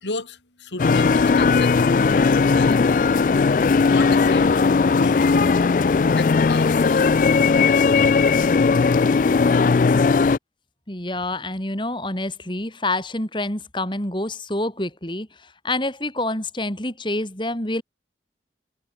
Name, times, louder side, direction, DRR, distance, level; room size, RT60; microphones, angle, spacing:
voice 1, 0.0-3.0 3.8-8.1, left 2 dB, 90° left, 3.5 m, -34 dB
sound 1, 0.8-10.4, left 4 dB, 45° left, 0.3 m, -18 dB
voice 2, 10.9-17.8, left 1 dB, 25° left, 4.2 m, -27 dB
head